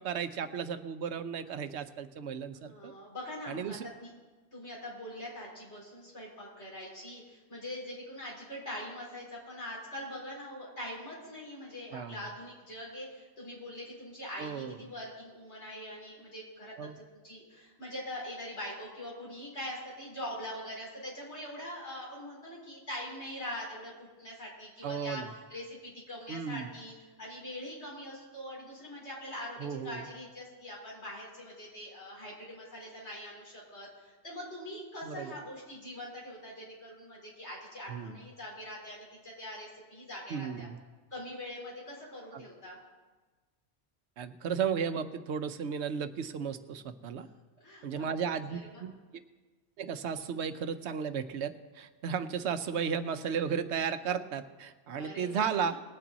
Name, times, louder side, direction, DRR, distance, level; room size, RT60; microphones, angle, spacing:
voice 1, 0.0-2.9 3.5-3.9 11.9-12.2 14.4-14.8 16.8-17.0 24.8-25.3 26.3-26.7 29.6-30.0 35.0-35.3 37.9-38.2 40.3-40.8 42.3-42.4 44.2-47.3 47.8-48.9 49.8-55.7, right 7 dB, 85° right, 11 dB, 1.0 m, -34 dB
voice 2, 2.5-4.1 4.5-40.7 41.1-42.8 47.6-48.8 55.0-55.8, left 1 dB, 80° left, -4 dB, 4.6 m, -43 dB
20.0 x 8.7 x 4.1 m, 1.3 s
omnidirectional pair, 1.1 m